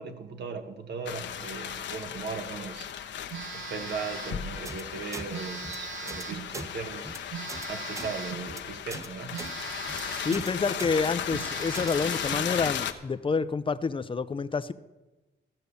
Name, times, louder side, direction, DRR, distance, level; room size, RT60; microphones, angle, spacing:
voice 1, 0.0-2.9 3.5-7.1 7.7-9.4, right 5 dB, 60° right, 6 dB, 1.6 m, -38 dB
sound 1, 1.1-12.9, left 9 dB, 65° left, 0.9 m, -36 dB
Telephone, 3.3-4.5 5.3-6.5 7.3-8.5 9.3-10.5 10.9-11.0 11.3-12.5, right 8 dB, 80° right, 1.0 m, -40 dB
sound 2, 4.6-4.8 5.1-5.3 5.6-5.8 6.1-6.2 6.5-6.7 7.0-7.2 7.5-7.7 7.9-8.1 8.4-8.6 8.9-9.1 9.4-9.5 9.8-10.0 10.3-10.5 10.8-10.9 11.2-11.4 11.7-11.9, right 2 dB, 15° right, 0.7 m, -39 dB
voice 2, 10.2-14.7, left 4 dB, 25° left, 14 dB, 0.6 m, -28 dB
15.0 x 6.6 x 7.0 m, 1.1 s
cardioid pair, 90°, 20 cm